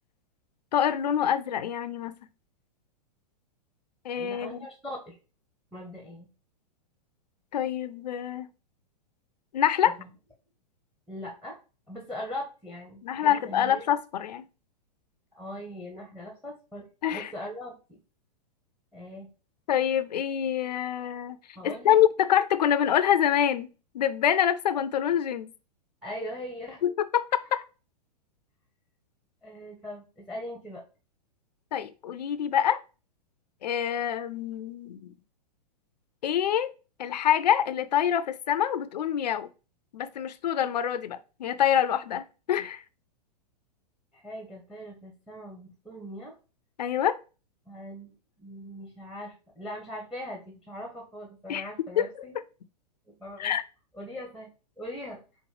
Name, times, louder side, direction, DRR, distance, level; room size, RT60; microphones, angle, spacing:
voice 1, 0.7-2.2 4.0-4.6 7.5-8.5 9.5-10.0 13.0-14.5 17.0-17.3 19.7-21.4 21.6-25.5 26.8-27.6 31.7-32.8 33.6-35.1 36.2-36.7 37.0-39.5 39.9-42.8 46.8-47.2 51.5-51.6 52.0-52.1 53.4-53.6, left 10 dB, 75° left, 0.5 m, -26 dB
voice 2, 4.2-5.2 5.7-6.3 10.0-10.1 11.1-11.6 11.9-13.8 15.3-18.0 18.9-19.3 21.6-22.0 26.0-26.8 29.4-30.8 44.1-46.3 47.7-48.1 48.4-52.3 53.2-53.5 53.9-54.5 54.8-55.2, equal, ahead, 0.9 m, -40 dB
5.0 x 2.2 x 3.3 m
hypercardioid pair, 110°, 21 cm